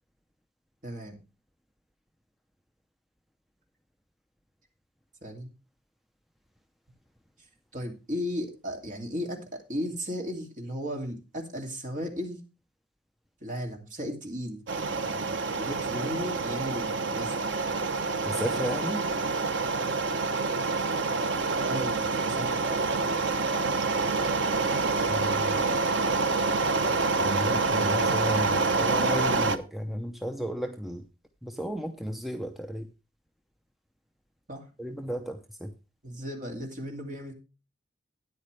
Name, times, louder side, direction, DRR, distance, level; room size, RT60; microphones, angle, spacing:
voice 1, 0.8-1.2 5.2-5.5 7.7-12.4 13.4-14.6 15.0-17.3 21.6-22.8 34.5-34.6 36.0-37.3, equal, 45° right, 2 dB, 2.7 m, -35 dB
sound 1, 14.7-29.6, right 3 dB, 75° right, 0.9 m, -27 dB
voice 2, 18.2-19.0 25.1-25.6 27.2-31.0 31.4-32.9 34.8-35.7, equal, ahead, 5 dB, 0.7 m, -34 dB
13.0 x 9.6 x 3.3 m, 0.30 s
head